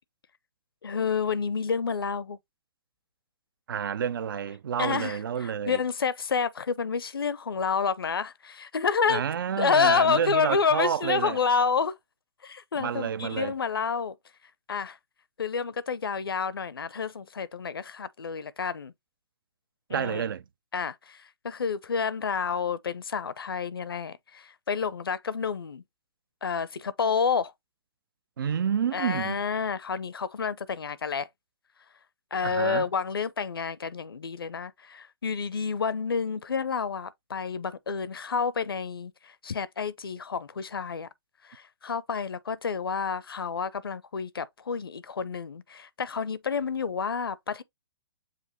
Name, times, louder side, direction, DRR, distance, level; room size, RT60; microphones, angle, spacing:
voice 1, 0.8-2.4 4.8-9.2 9.6-11.9 12.4-14.2 14.7-15.0 15.4-18.9 19.9-20.3 20.7-25.8 26.4-27.5 28.9-31.3 32.3-41.1 41.5-47.6, left 6 dB, 75° left, 0.6 m, -29 dB
voice 2, 3.7-5.8 9.1-11.4 12.8-13.5 19.9-20.4 28.4-29.4 32.4-32.9, right 8 dB, 65° right, 0.4 m, -29 dB
7.4 x 2.5 x 2.8 m
figure-of-eight pair, 125°, 12 cm